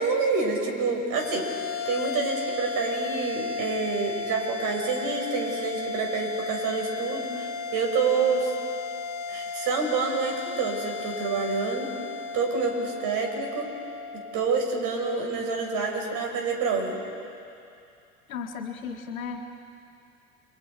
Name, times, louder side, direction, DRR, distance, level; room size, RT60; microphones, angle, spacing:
voice 1, 0.0-1.4 1.9-8.5 9.3-11.9 12.3-13.7 14.3-17.0, right 4 dB, 55° right, 2 dB, 5.5 m, -27 dB
sound 1, 1.1-15.7, left 4 dB, 45° left, 2.3 m, -35 dB
voice 2, 18.3-19.4, left 6 dB, 80° left, 3 dB, 2.0 m, -35 dB
29.5 x 24.5 x 4.7 m, 2.5 s
hypercardioid pair, 75°, 41 cm